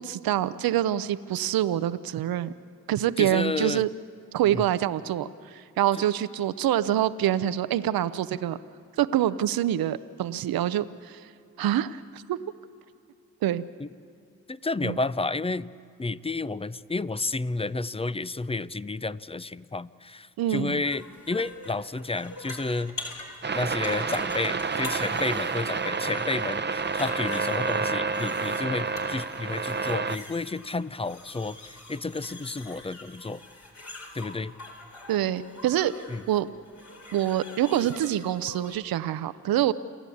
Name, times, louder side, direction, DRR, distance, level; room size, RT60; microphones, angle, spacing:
voice 1, 0.0-2.5 2.9-3.9 4.3-8.6 9.0-11.2 11.6-12.4 13.4-13.6 14.8-15.0 20.4-20.8 35.1-35.9 36.3-36.5 37.1-39.7, right 12 dB, 80° right, 14 dB, 0.7 m, -26 dB
voice 2, 3.2-3.8 4.5-4.6 13.8-13.9 14.5-15.7 16.0-22.9 23.5-33.4 34.1-34.5 36.1-36.2, left 3 dB, 15° left, 17 dB, 0.6 m, -31 dB
sound 1, 20.8-38.8, left 2 dB, 50° left, 4.8 m, -43 dB
sound 2, 23.4-30.2, right 4 dB, 30° right, 0.8 m, -29 dB
29.0 x 11.0 x 8.5 m, 2.6 s
supercardioid pair, 45°, 35 cm